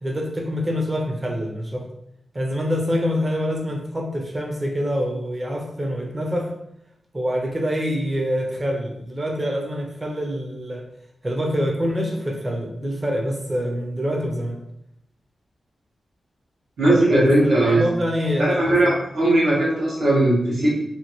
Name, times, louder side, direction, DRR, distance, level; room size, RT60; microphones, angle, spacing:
voice 1, 0.0-1.9 2.3-6.5 7.1-10.9 11.2-14.6 16.8-19.0, equal, 20° right, 1 dB, 0.5 m, -26 dB
voice 2, 16.8-17.8 18.4-20.7, right 1 dB, 80° right, -7 dB, 1.3 m, -18 dB
2.8 x 2.6 x 2.9 m, 0.77 s
wide cardioid pair, 155°, 0 cm